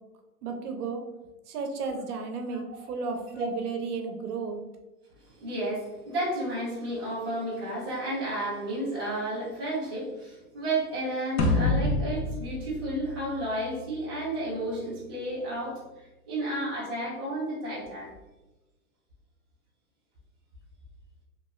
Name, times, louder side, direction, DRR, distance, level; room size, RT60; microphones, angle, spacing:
voice 1, 0.4-1.0 1.5-4.6, right 4 dB, 75° right, 4 dB, 0.7 m, -33 dB
voice 2, 5.2-15.8 16.3-18.1, right 1 dB, 20° right, -9 dB, 0.3 m, -32 dB
sound 1, 11.4-13.8, left 2 dB, 65° left, 0.8 m, -27 dB
2.9 x 2.3 x 2.9 m, 1.0 s
hypercardioid pair, 155°, 46 cm